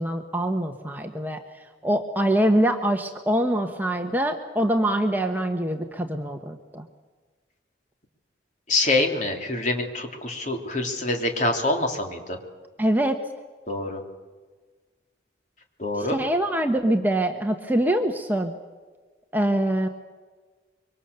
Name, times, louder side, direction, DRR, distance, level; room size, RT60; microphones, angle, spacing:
voice 1, 0.0-1.4 1.8-6.8 12.8-13.2 16.0-18.5 19.3-19.9, right 1 dB, 10° right, 4 dB, 1.2 m, -24 dB
voice 2, 8.7-12.4 13.7-14.0 15.8-16.2, left 2 dB, 40° left, 3 dB, 3.2 m, -25 dB
25.5 x 24.0 x 7.0 m, 1.4 s
head